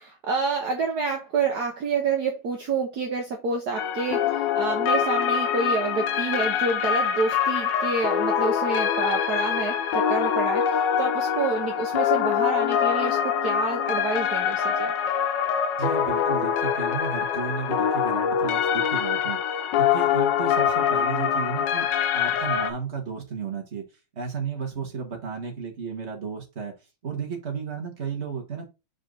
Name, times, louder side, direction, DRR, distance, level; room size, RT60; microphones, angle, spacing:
voice 1, 0.0-14.9, right 4 dB, 55° right, 1.6 m, -28 dB
sound 1, 3.8-22.7, left 8 dB, 70° left, 1.3 m, -24 dB
voice 2, 15.8-19.4 19.8-21.9 22.1-23.8 24.2-26.7 27.0-28.7, right 6 dB, 35° right, 2.1 m, -33 dB
5.6 x 4.9 x 3.9 m
omnidirectional pair, 2.2 m